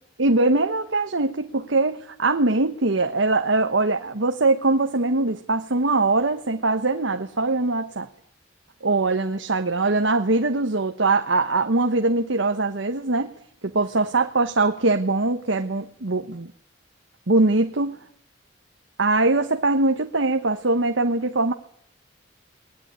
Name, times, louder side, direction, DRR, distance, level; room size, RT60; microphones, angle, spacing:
voice 1, 0.2-8.1 8.8-13.3 13.6-16.5 17.3-18.0 19.0-21.5, right 2 dB, 80° right, 6 dB, 1.2 m, -22 dB
20.0 x 19.0 x 9.5 m, 0.65 s
head